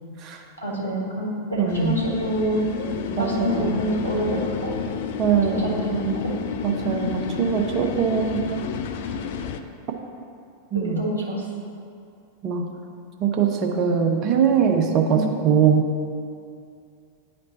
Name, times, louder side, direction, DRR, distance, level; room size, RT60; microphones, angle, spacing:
voice 1, 0.6-2.9 3.2-4.7 5.5-6.3 9.2-9.3 10.7-11.4 15.1-15.2, right 1 dB, 85° left, -4 dB, 1.3 m, -27 dB
voice 2, 1.6-1.9 3.2-3.7 5.2-5.7 6.1-6.2 6.6-8.4 10.7-11.0 12.4-12.6 13.2-15.2 15.4-15.8, right 7 dB, 35° right, 3 dB, 0.7 m, -21 dB
sound 1, 1.7-9.6, left 7 dB, 50° left, 0.3 m, -30 dB
9.6 x 3.3 x 3.9 m, 2.4 s
figure-of-eight pair, 90°, 0 cm